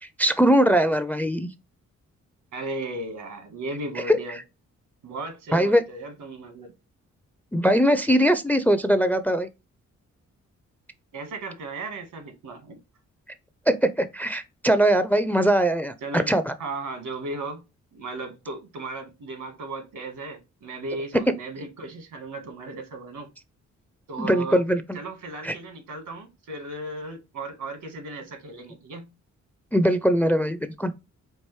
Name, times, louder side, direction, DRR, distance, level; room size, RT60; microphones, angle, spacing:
voice 1, 0.2-1.5 4.0-4.2 5.5-5.8 7.5-9.5 13.7-16.5 24.2-25.0 25.4-25.5 29.7-30.9, equal, 5° left, 0.4 m, -21 dB
voice 2, 2.5-4.4 5.0-6.7 11.1-12.8 16.0-16.3 16.6-17.6 17.9-23.3 24.1-24.6 24.9-29.1, right 2 dB, 80° right, 1.4 m, -36 dB
4.6 x 2.5 x 3.1 m
cardioid pair, 65°, 31 cm